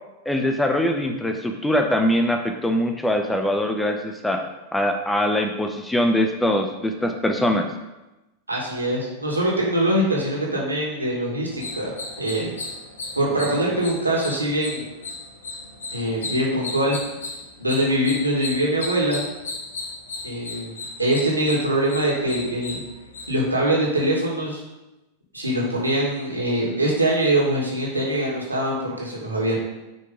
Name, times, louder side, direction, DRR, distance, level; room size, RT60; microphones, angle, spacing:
voice 1, 0.3-4.5 4.7-7.7, left 1 dB, 5° left, 5 dB, 0.7 m, -22 dB
voice 2, 8.5-12.5 13.1-14.9 15.9-17.0 17.6-19.2 20.2-20.7 21.0-22.8 23.3-24.6 25.3-29.6, right 1 dB, 85° right, -3 dB, 2.2 m, -23 dB
sound 1, 11.5-23.6, left 3 dB, 70° left, 1.3 m, -35 dB
9.3 x 4.7 x 3.8 m, 1.0 s
figure-of-eight pair, 90°, 0 cm